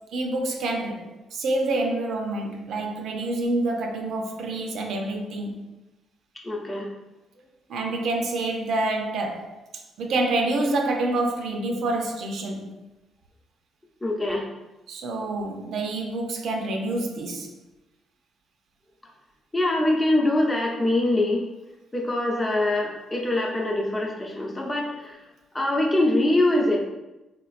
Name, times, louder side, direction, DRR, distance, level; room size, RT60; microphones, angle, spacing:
voice 1, 0.0-5.7 7.7-12.8 14.9-17.5, right 2 dB, 70° right, 0.4 m, -27 dB
voice 2, 6.4-6.9 14.0-14.5 19.5-21.4 21.9-25.2 25.5-26.8, left 1 dB, 20° left, 0.7 m, -23 dB
3.3 x 2.9 x 2.4 m
cardioid pair, 90°, 0 cm